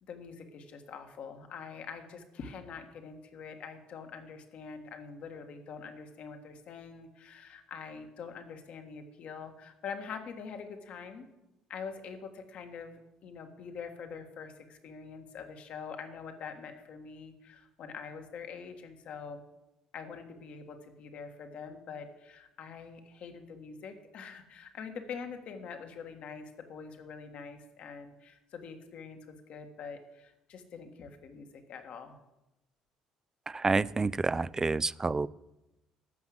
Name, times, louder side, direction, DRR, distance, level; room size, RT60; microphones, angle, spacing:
voice 1, 0.0-11.3 11.7-19.4 19.9-32.2, left 6 dB, 60° left, 6 dB, 1.7 m, -44 dB
voice 2, 33.5-35.3, right 3 dB, 25° right, 20 dB, 0.4 m, -28 dB
13.0 x 5.9 x 7.7 m, 0.95 s
hypercardioid pair, 60°, 2 cm